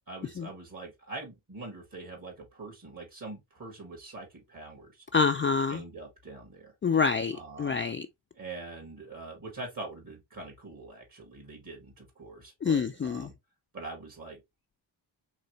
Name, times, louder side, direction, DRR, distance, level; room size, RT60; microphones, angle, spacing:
voice 1, 0.1-5.0 5.7-6.7 7.3-7.8 8.4-13.4 13.7-14.4, right 3 dB, 45° right, 2.2 m, -43 dB
voice 2, 5.1-5.8 6.8-8.1 12.6-13.3, left 5 dB, 30° left, 0.4 m, -27 dB
4.0 x 3.3 x 3.2 m
cardioid pair, 65°, 45 cm